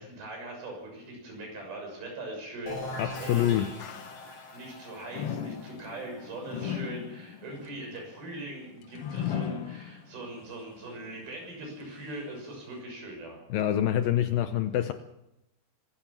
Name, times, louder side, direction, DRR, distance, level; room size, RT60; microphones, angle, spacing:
voice 1, 0.0-3.7 4.5-13.4, right 2 dB, 65° right, 1 dB, 8.5 m, -41 dB
sound 1, 2.7-8.2, left 2 dB, 55° left, 9.4 m, -42 dB
sound 2, 3.0-4.6 5.1-10.4 10.8-10.9 11.8-11.9, left 9 dB, 90° left, 1.2 m, -38 dB
voice 2, 3.0-3.7 4.3-4.6 13.5-14.9, left 11 dB, 75° left, 9 dB, 2.3 m, -26 dB
24.0 x 15.5 x 7.4 m, 0.87 s
omnidirectional pair, 4.7 m